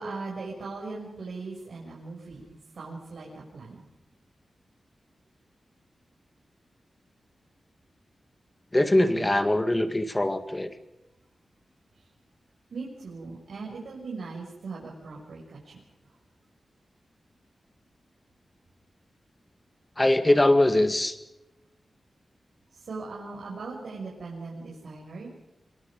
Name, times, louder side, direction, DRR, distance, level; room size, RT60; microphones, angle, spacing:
voice 1, 0.0-3.8 9.1-9.3 12.0-12.1 12.7-15.8 22.7-25.3, right 3 dB, 75° right, -3 dB, 6.8 m, -39 dB
voice 2, 8.7-10.7 20.0-21.2, left 1 dB, 15° left, 9 dB, 1.9 m, -22 dB
26.5 x 24.5 x 5.3 m, 0.95 s
wide cardioid pair, 150°, 0 cm